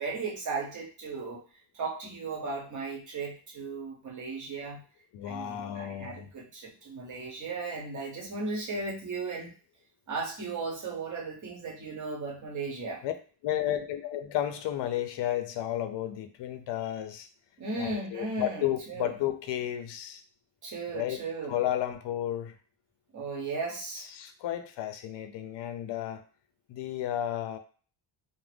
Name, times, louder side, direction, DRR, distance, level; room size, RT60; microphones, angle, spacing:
voice 1, 0.0-1.4 1.7-4.8 5.2-9.5 10.1-13.0 17.6-19.1 20.6-21.6 23.1-24.1, right 3 dB, 40° right, -1 dB, 1.0 m, -36 dB
voice 2, 5.1-6.3 13.0-13.1 13.4-17.3 17.8-20.2 20.9-21.2 21.5-22.5 24.0-26.2 26.7-27.6, left 12 dB, 65° left, 8 dB, 0.6 m, -32 dB
2.5 x 2.1 x 3.3 m, 0.39 s
cardioid pair, 120°, 46 cm